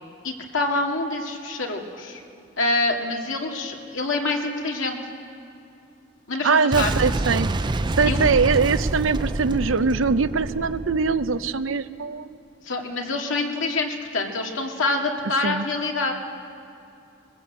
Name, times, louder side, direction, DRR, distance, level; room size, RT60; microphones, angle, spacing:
voice 1, 0.2-2.2 2.6-5.0 6.3-6.9 8.0-8.3 12.6-16.1, left 2 dB, 85° left, 1 dB, 2.3 m, -26 dB
voice 2, 6.4-7.5 8.0-12.4 15.4-15.6, right 4 dB, 90° right, 12 dB, 0.7 m, -22 dB
Boom, 6.7-11.6, right 2 dB, 25° right, 0.4 m, -27 dB
21.0 x 20.0 x 8.1 m, 2.6 s
head